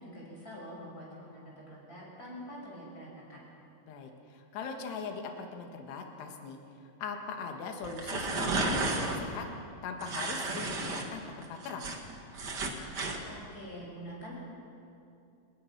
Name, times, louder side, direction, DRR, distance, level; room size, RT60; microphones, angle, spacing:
voice 1, 0.0-3.4 13.2-14.3, equal, 20° left, -4 dB, 6.6 m, -45 dB
voice 2, 3.9-6.6 7.0-9.5 9.8-11.9, left 5 dB, 70° left, 3 dB, 3.8 m, -40 dB
sound 1, 7.8-9.2 10.0-11.0 11.4-13.2, right 3 dB, 85° right, 0.9 m, -32 dB
29.0 x 19.5 x 6.0 m, 2.6 s
omnidirectional pair, 5.2 m